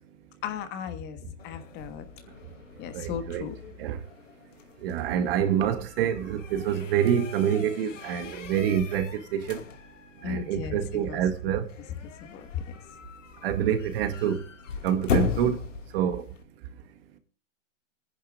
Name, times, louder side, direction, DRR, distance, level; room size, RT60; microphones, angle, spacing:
voice 1, 0.4-1.2 1.4-2.1 2.8-3.6 10.2-10.8 11.1-11.2 12.2-12.6, left 8 dB, 25° left, 1.5 m, -35 dB
sound 1, 1.4-16.4, left 6 dB, 75° left, 2.5 m, -38 dB
voice 2, 2.9-3.5 3.8-4.0 4.8-9.6 10.2-11.7 13.4-14.4 14.8-15.6 15.9-16.2, right 9 dB, 50° right, 2.1 m, -26 dB
28.5 x 10.5 x 2.4 m
hypercardioid pair, 140°, 38 cm